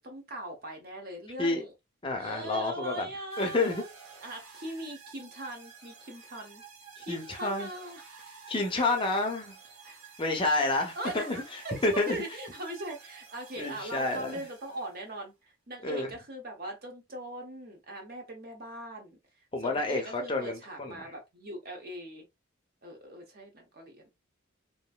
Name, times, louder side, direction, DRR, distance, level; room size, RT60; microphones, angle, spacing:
voice 1, 0.0-1.7 2.2-3.9 4.2-6.6 7.0-8.0 8.8-9.0 9.8-10.2 11.0-11.8 12.1-15.3 15.7-19.2 19.6-22.3 22.8-24.1, right 1 dB, 45° right, 0.9 m, -40 dB
voice 2, 2.0-3.1 3.4-3.8 7.0-7.7 8.5-9.6 10.2-11.4 11.8-12.2 13.6-14.4 15.8-16.1 19.5-21.1, left 2 dB, 25° left, 0.6 m, -29 dB
sound 1, 3.3-15.1, right 6 dB, 90° right, 0.9 m, -51 dB
3.0 x 2.6 x 2.2 m
head